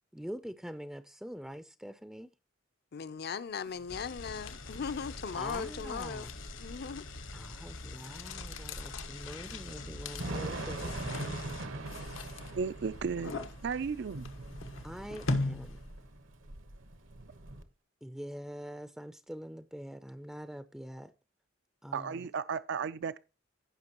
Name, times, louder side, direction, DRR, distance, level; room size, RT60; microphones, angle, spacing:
voice 1, 0.1-2.3 4.3-4.4 5.3-6.3 7.3-11.4 14.8-15.8 18.0-21.1 21.8-22.2, equal, 5° right, 0.4 m, -44 dB
voice 2, 2.9-6.2 6.6-7.0, left 6 dB, 55° left, 0.6 m, -38 dB
sound 1, 3.7-16.0, left 2 dB, 90° left, 1.2 m, -41 dB
sound 2, 3.9-11.7, left 3 dB, 75° left, 1.4 m, -46 dB
Thunder / Rain, 4.2-17.6, right 2 dB, 80° right, 1.2 m, -43 dB
voice 3, 12.6-13.3 13.6-14.3 21.9-23.2, right 6 dB, 60° right, 0.4 m, -34 dB
16.0 x 5.9 x 2.9 m
head